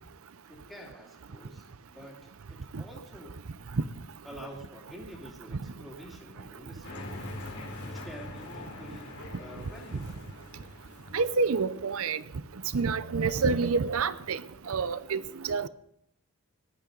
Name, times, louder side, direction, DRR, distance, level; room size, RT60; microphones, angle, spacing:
voice 1, 0.5-3.3 4.2-7.2 7.8-10.2, equal, ahead, -4 dB, 2.5 m, -48 dB
sound 1, 6.8-11.7, left 2 dB, 85° left, 3.7 m, -42 dB
voice 2, 11.1-12.2 12.7-14.4 14.7-15.7, right 4 dB, 70° right, 16 dB, 0.6 m, -28 dB
18.5 x 12.0 x 3.9 m, 0.73 s
head